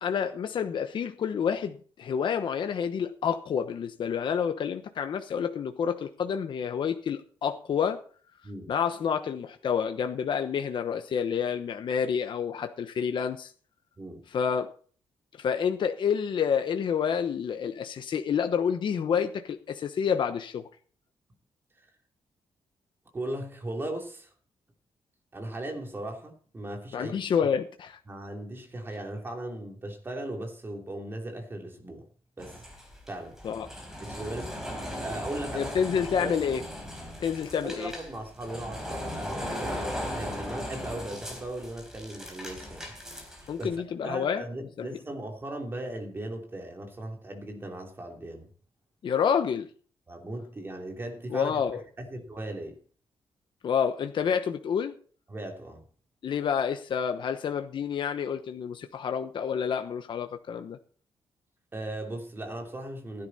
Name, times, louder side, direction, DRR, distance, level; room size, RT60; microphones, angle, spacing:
voice 1, 0.0-8.0 8.7-13.5 14.3-14.7 15.4-20.6 26.9-27.9 33.4-33.7 35.5-36.6 37.2-37.9 43.5-44.4 44.8-44.9 49.0-49.7 51.3-51.8 53.6-54.9 56.2-60.8, left 7 dB, 55° left, 1.0 m, -28 dB
voice 2, 8.4-8.7 14.0-14.2 23.1-24.3 25.3-27.1 28.1-32.0 32.4-32.6 33.1-33.4 34.0-35.8 36.2-36.5 37.6-42.9 43.3-43.8 44.0-48.5 50.1-52.8 55.3-55.9 61.7-63.3, right 1 dB, 25° right, 3.1 m, -38 dB
sound 1, 32.4-43.8, equal, 5° right, 4.4 m, -38 dB
15.5 x 10.5 x 4.2 m
wide cardioid pair, 150°, 10 cm